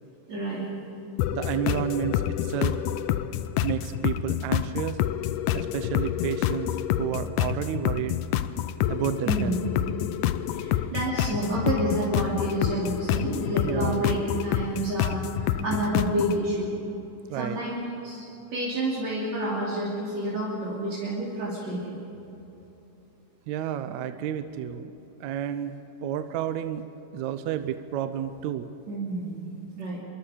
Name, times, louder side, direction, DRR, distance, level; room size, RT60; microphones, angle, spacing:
voice 1, 0.3-0.7 9.3-9.6 10.5-16.7 17.3-18.2 18.5-22.0 28.9-29.4 29.8-30.0, right 1 dB, 55° right, -6 dB, 4.2 m, -29 dB
sound 1, 1.2-16.4, left 12 dB, 80° left, 2.1 m, -28 dB
voice 2, 1.3-2.8 3.6-5.0 5.5-8.2 8.9-9.6 13.6-14.1 17.3-17.6 23.5-24.9 25.2-25.7 26.0-26.8 27.1-28.7, right 10 dB, 75° right, 10 dB, 1.9 m, -31 dB
26.0 x 23.5 x 5.0 m, 3.0 s
omnidirectional pair, 3.7 m